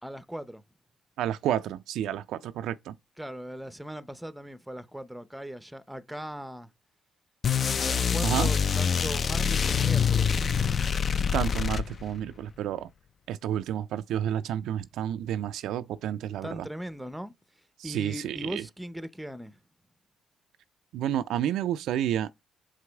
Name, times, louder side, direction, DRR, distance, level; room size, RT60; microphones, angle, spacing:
voice 1, 0.0-0.6 3.2-6.7 7.8-10.4 16.4-17.3 17.8-19.6, equal, 5° right, 0.6 m, -39 dB
voice 2, 1.2-3.0 8.2-8.5 11.3-12.9 13.3-16.7 17.8-18.6 20.9-22.3, right 10 dB, 80° right, 0.3 m, -30 dB
sound 1, 7.4-12.2, left 7 dB, 45° left, 0.4 m, -25 dB
6.0 x 4.8 x 3.4 m
cardioid pair, 90°, 0 cm